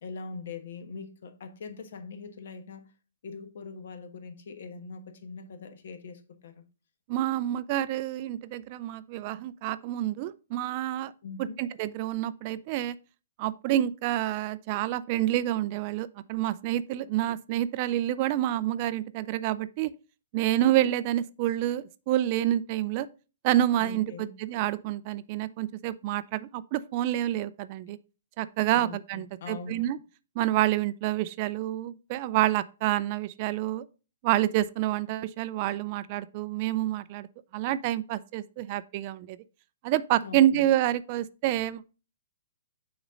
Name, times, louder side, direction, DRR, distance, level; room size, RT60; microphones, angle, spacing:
voice 1, 0.0-2.9 3.2-6.6 11.2-11.6 23.8-24.3 28.7-29.8 40.2-40.6, left 4 dB, 60° left, 1.2 m, -42 dB
voice 2, 7.1-11.1 11.4-13.0 13.4-19.9 20.3-23.1 23.4-24.1 24.4-28.0 28.4-30.0 30.4-33.9 34.2-37.3 37.5-39.4 39.8-41.9, right 13 dB, 35° right, 0.3 m, -28 dB
6.2 x 4.0 x 5.0 m
hypercardioid pair, 160°, 0 cm